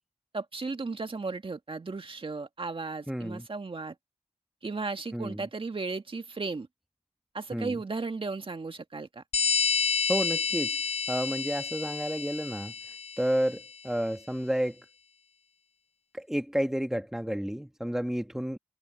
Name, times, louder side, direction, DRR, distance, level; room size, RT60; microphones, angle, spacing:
voice 1, 0.3-3.9 4.6-6.7 7.3-9.2, right 3 dB, 45° right, 1.9 m, -35 dB
voice 2, 3.1-3.5 5.1-5.4 7.5-7.8 10.1-10.8 11.1-12.7 13.2-14.8 16.1-18.6, equal, 5° right, 1.4 m, -30 dB
sound 1, 9.3-13.6, left 5 dB, 60° left, 0.5 m, -30 dB
wide cardioid pair, 65°, 12 cm